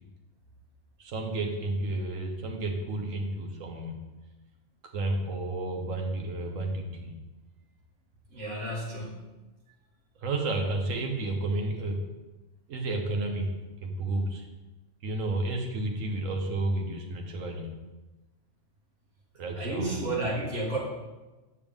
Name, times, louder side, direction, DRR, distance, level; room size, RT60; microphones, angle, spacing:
voice 1, 1.0-4.0 4.9-7.1 10.2-12.1 12.7-14.4 15.0-17.7 19.4-20.1, right 2 dB, 85° right, 1 dB, 1.4 m, -31 dB
voice 2, 8.3-9.2 19.6-20.8, right 2 dB, 70° right, -5 dB, 2.2 m, -31 dB
7.3 x 6.7 x 3.5 m, 1.1 s
omnidirectional pair, 1.3 m